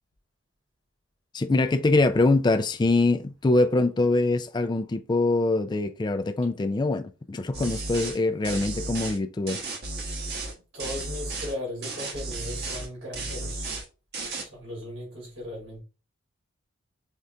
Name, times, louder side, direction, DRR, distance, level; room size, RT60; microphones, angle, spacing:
voice 1, 1.3-9.6, left 2 dB, 20° left, 0.3 m, -24 dB
sound 1, 7.5-8.2 8.4-9.2 9.5-10.5 10.8-11.5 11.8-12.9 13.1-13.9 14.1-14.4, right 2 dB, 55° right, 1.1 m, -34 dB
voice 2, 10.7-13.7 14.4-15.8, left 1 dB, 75° right, 2.4 m, -37 dB
5.4 x 2.5 x 3.3 m
head